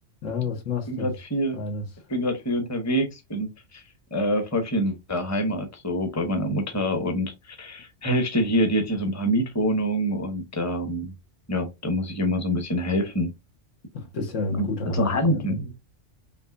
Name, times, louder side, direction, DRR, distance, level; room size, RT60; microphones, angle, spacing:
voice 1, 0.2-1.1 1.5-1.9 13.9-15.6, left 3 dB, 85° left, 1.5 m, -30 dB
voice 2, 0.9-1.6 2.1-3.8 4.1-11.1 11.5-13.3 14.6-14.7 14.9-15.7, equal, 15° left, 0.8 m, -26 dB
5.7 x 2.7 x 2.5 m
omnidirectional pair, 1.3 m